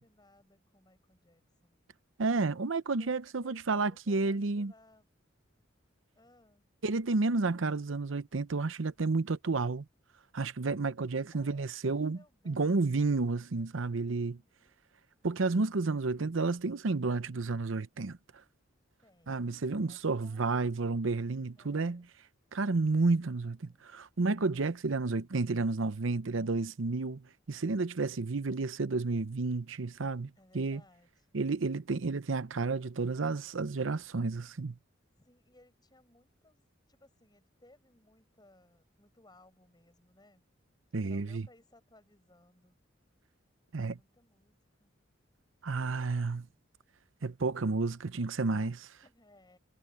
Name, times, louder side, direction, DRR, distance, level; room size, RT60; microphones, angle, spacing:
voice 1, 0.0-1.8 3.0-5.1 6.1-6.6 11.3-13.0 14.0-14.9 19.0-21.0 21.6-22.1 30.4-31.3 35.1-36.6 36.9-40.5 41.0-42.8 43.7-44.9 49.0-49.6, left 1 dB, 20° left, 6.1 m, -63 dB
voice 2, 2.2-4.7 6.8-9.8 10.3-12.2 12.5-14.4 15.2-18.2 19.3-22.0 22.5-23.6 23.8-27.2 27.5-30.8 31.3-34.7 40.9-41.5 43.7-43.9 45.6-46.5 47.2-48.9, right 3 dB, 80° right, 0.7 m, -31 dB
head